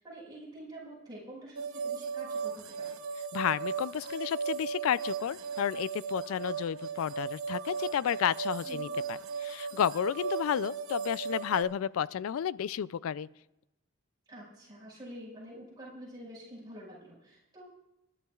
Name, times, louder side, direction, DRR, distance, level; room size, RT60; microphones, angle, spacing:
voice 1, 0.0-3.0 8.6-8.9 14.3-17.6, right 1 dB, 20° right, -6 dB, 5.4 m, -47 dB
sound 1, 1.6-11.6, right 6 dB, 90° right, 1.0 m, -37 dB
voice 2, 3.3-13.3, left 8 dB, 85° left, 19 dB, 0.3 m, -32 dB
28.5 x 11.0 x 2.4 m, 0.93 s
head